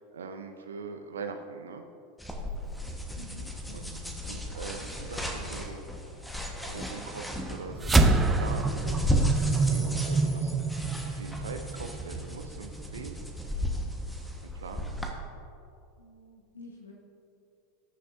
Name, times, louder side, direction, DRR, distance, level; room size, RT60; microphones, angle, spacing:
voice 1, 0.0-1.8 3.7-3.8 4.2-6.2 6.6-13.2 14.5-14.9, right 5 dB, 75° right, 6 dB, 0.6 m, -42 dB
sound 1, 2.2-15.1, equal, 5° left, 1.3 m, -33 dB
voice 2, 3.1-4.1 14.7-15.0 16.0-16.9, left 2 dB, 80° left, -1 dB, 1.2 m, -49 dB
sound 2, 7.8-12.5, right 4 dB, 15° right, 0.6 m, -27 dB
19.5 x 6.7 x 2.6 m, 2.6 s
figure-of-eight pair, 85°, 0 cm